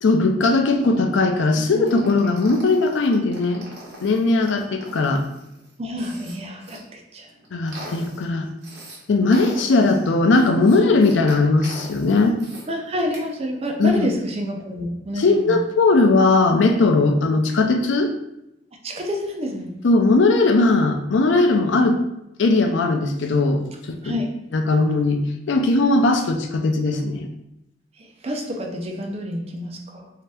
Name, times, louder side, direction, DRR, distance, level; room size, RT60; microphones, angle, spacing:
voice 1, 0.0-3.7 4.0-5.2 7.5-8.5 9.1-12.4 13.8-14.1 15.2-18.1 19.8-22.0 22.4-23.6 23.9-24.1 24.5-27.3, left 3 dB, 65° left, 5 dB, 0.5 m, -18 dB
voice 2, 1.6-1.9 5.8-7.3 12.7-15.6 18.8-19.8 24.0-24.3 28.0-30.1, equal, 30° right, 2 dB, 0.5 m, -28 dB
sound 1, 1.9-6.8 7.3-9.0 9.3-12.6 13.0-13.3, right 1 dB, 60° right, 1.1 m, -41 dB
3.4 x 2.8 x 3.3 m, 0.85 s
head